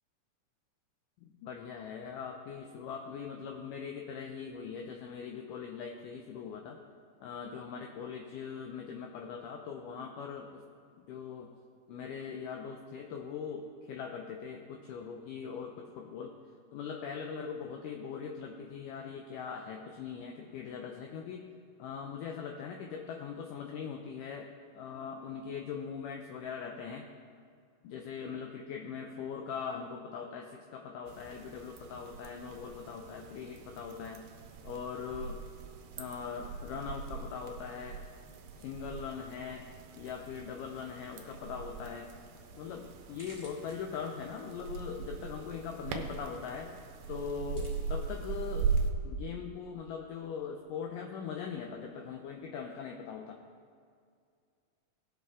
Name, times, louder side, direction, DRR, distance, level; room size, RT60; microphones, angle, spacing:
voice 1, 1.2-6.8 7.2-10.6 11.1-11.5 11.9-16.3 16.7-21.4 21.8-24.5 24.8-27.1 27.8-34.3 34.6-35.4 36.0-38.0 38.6-39.7 39.9-42.1 42.5-46.7 47.1-48.7 49.0-53.4, left 6 dB, 80° left, 2 dB, 1.9 m, -41 dB
sound 1, 31.1-48.9, right 5 dB, 80° right, 2.5 m, -40 dB
sound 2, 42.9-52.6, equal, 5° left, 1.9 m, -63 dB
18.0 x 6.8 x 3.6 m, 2.2 s
omnidirectional pair, 4.3 m